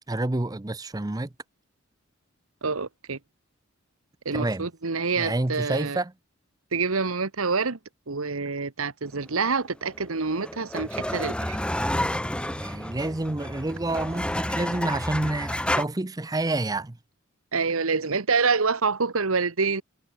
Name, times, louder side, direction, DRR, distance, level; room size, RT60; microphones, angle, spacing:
voice 1, 0.1-1.3 4.3-4.7 5.2-6.1 12.5-17.0, right 2 dB, 15° right, 0.6 m, -28 dB
voice 2, 2.6-3.2 4.2-6.0 6.7-7.8 8.1-11.6 17.5-19.8, right 4 dB, 85° right, 1.3 m, -26 dB
sound 1, 10.0-15.8, left 1 dB, 5° left, 2.7 m, -30 dB
head